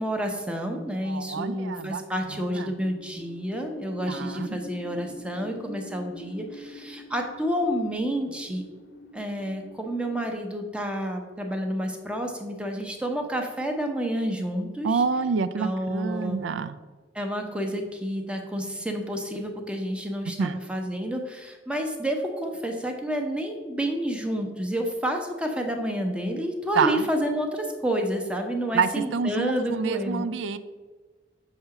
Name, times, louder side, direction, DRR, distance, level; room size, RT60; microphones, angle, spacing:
voice 1, 0.0-8.6 9.1-15.0 15.6-16.4 17.1-30.2, equal, 5° right, 3 dB, 0.6 m, -29 dB
voice 2, 1.0-2.0 2.3-2.7 4.1-4.6 14.8-16.8 20.4-20.6 26.8-27.1 28.7-30.6, right 5 dB, 85° right, 13 dB, 0.3 m, -27 dB
sound 1, 2.3-10.3, left 1 dB, 75° left, 0.6 m, -44 dB
6.7 x 2.8 x 5.7 m, 1.3 s
head